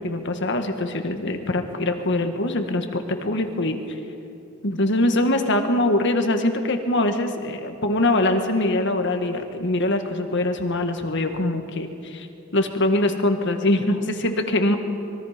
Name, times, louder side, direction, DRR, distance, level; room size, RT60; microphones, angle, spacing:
voice 1, 0.0-3.8 4.6-12.3 12.5-14.8, left 1 dB, 60° left, 6 dB, 1.7 m, -23 dB
25.5 x 22.5 x 5.2 m, 2.8 s
head